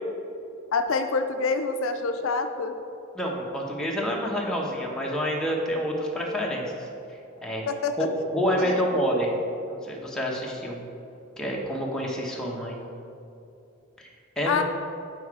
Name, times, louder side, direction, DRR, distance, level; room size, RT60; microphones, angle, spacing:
voice 1, 0.7-2.8 7.7-7.9 8.6-8.8 14.4-14.6, left 4 dB, 75° left, 7 dB, 0.5 m, -26 dB
voice 2, 3.1-6.9 7.4-7.7 8.0-9.3 9.7-10.8 11.4-12.8 14.0-14.1 14.4-14.6, equal, 5° left, -3 dB, 1.1 m, -28 dB
8.8 x 4.7 x 4.8 m, 2.7 s
head